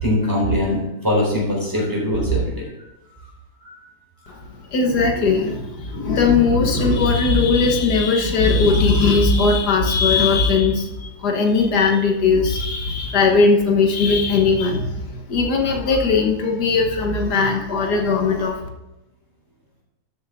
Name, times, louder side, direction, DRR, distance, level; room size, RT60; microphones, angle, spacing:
voice 1, 0.0-2.6 3.6-3.9, equal, 10° right, -4 dB, 3.7 m, -21 dB
voice 2, 4.7-18.6, left 4 dB, 85° left, 2 dB, 1.9 m, -18 dB
12.5 x 7.6 x 3.6 m, 0.95 s
omnidirectional pair, 1.7 m